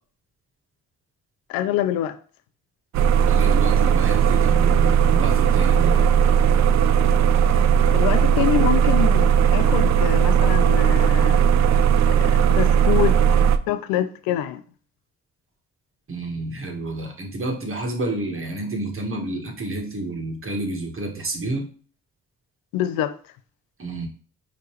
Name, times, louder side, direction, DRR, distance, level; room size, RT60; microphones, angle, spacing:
voice 1, 1.5-2.2 7.9-11.4 12.1-13.4 13.7-14.6 22.7-23.2, left 12 dB, 80° left, 0.6 m, -25 dB
sound 1, 2.9-13.6, right 8 dB, 55° right, 0.4 m, -17 dB
voice 2, 3.3-6.1 11.8-12.0 16.1-21.7 23.8-24.1, right 2 dB, 35° right, 1.5 m, -30 dB
4.8 x 3.4 x 3.1 m
hypercardioid pair, 50°, 35 cm